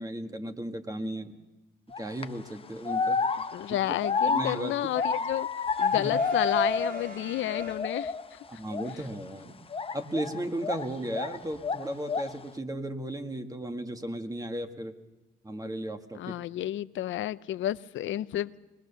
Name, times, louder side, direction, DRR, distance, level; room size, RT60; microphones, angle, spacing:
voice 1, 0.0-1.4 2.0-3.2 3.7-4.0 4.2-4.7 5.9-6.2 8.5-9.7 9.9-14.9 15.4-16.4, right 1 dB, 20° right, 7 dB, 1.7 m, -35 dB
sound 1, 1.9-2.2 2.8-7.2 7.5-8.3 8.7-8.9 9.7-11.4 11.6-12.4, left 4 dB, 30° left, 0.8 m, -29 dB
voice 2, 3.5-5.5 5.8-8.4 16.1-18.5, left 13 dB, 75° left, 16 dB, 0.7 m, -31 dB
Brass instrument, 5.8-8.4, right 4 dB, 45° right, 1.4 m, -47 dB
21.0 x 20.5 x 7.0 m, 1.2 s
cardioid pair, 90°, 20 cm